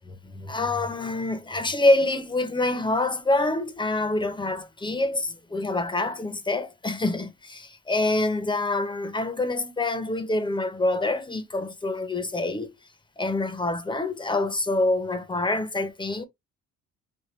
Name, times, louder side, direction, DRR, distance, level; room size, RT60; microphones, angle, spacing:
voice 1, 0.0-12.7 13.2-16.3, left 2 dB, 15° left, 0.8 m, -26 dB
5.1 x 2.5 x 3.2 m
cardioid pair, 90°, 30 cm